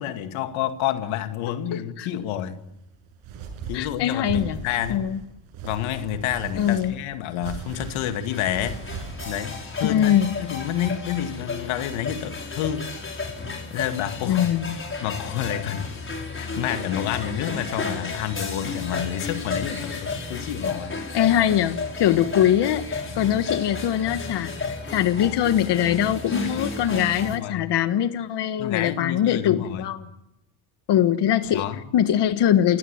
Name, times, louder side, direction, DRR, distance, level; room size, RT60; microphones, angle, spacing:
voice 1, 0.0-2.6 3.7-5.1 5.6-8.8 9.2-10.1 10.4-12.9 13.7-14.5 15.0-15.9 16.3-21.0 26.4-26.6 27.2-27.7 28.6-29.9 31.5-31.8, left 11 dB, 90° left, 2.2 m, -29 dB
voice 2, 1.7-2.1 3.7-5.2 6.6-6.9 9.8-10.3 14.2-14.8 21.1-30.0 30.9-31.6 31.9-32.8, left 10 dB, 60° left, 1.4 m, -22 dB
sound 1, 2.6-9.3, right 5 dB, 85° right, 7.5 m, -37 dB
sound 2, 7.5-27.4, left 3 dB, 25° left, 5.9 m, -33 dB
29.0 x 17.5 x 9.4 m
cardioid pair, 100°, 47 cm